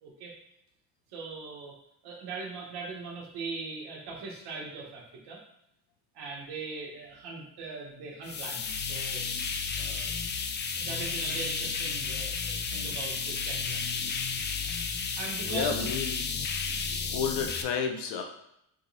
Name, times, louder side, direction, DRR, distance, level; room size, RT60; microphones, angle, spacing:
voice 1, 0.0-0.3 1.1-1.8 2.0-5.4 6.1-9.2 9.8-10.1 10.8-13.8 14.3-14.4 15.2-15.9, right 4 dB, 80° right, -2 dB, 1.2 m, -40 dB
sound 1, 8.2-17.6, left 5 dB, 30° left, 0.4 m, -32 dB
voice 2, 15.4-16.2 16.6-16.7 17.1-18.2, left 6 dB, 80° left, 3 dB, 0.8 m, -31 dB
4.5 x 3.0 x 2.7 m, 0.78 s
supercardioid pair, 75°, 40 cm